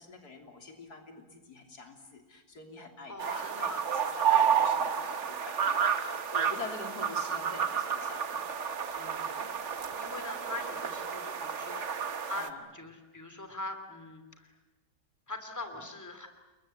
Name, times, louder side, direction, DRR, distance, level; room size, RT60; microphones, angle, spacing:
voice 1, 0.0-3.7 4.1-8.4 12.3-12.6, left 3 dB, 85° left, 3 dB, 3.8 m, -45 dB
voice 2, 3.1-3.8 8.9-9.6 10.0-11.9 12.3-14.5 15.3-16.3, left 2 dB, 10° left, 7 dB, 2.8 m, -42 dB
sound 1, 3.2-12.5, right 7 dB, 50° right, 1.5 m, -30 dB
29.5 x 22.0 x 9.0 m, 1.1 s
omnidirectional pair, 1.6 m